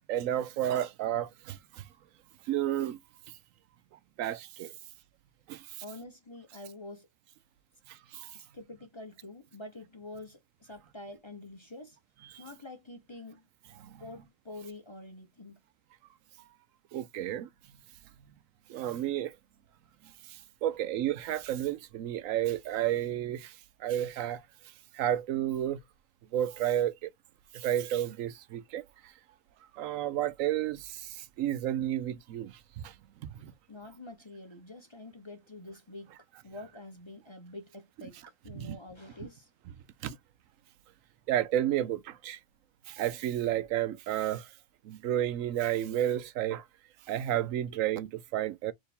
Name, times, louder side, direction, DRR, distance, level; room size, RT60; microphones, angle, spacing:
voice 1, 0.1-1.6 2.5-3.0 4.2-4.7 5.5-5.6 8.1-8.3 16.9-17.5 18.7-19.3 20.6-23.5 23.8-24.4 24.9-25.8 26.3-27.1 27.5-28.8 29.7-32.5 32.8-32.9 33.4-33.5 38.6-38.8 40.0-40.2 41.3-42.4 42.9-44.5 44.9-46.6 47.1-48.7, right 12 dB, 75° right, 0.9 m, -31 dB
voice 2, 5.8-7.1 8.3-12.0 12.4-13.4 14.0-15.6 33.7-36.1 36.4-38.2 38.4-39.5, left 2 dB, 25° left, 0.7 m, -46 dB
4.5 x 3.1 x 3.5 m
omnidirectional pair, 1.4 m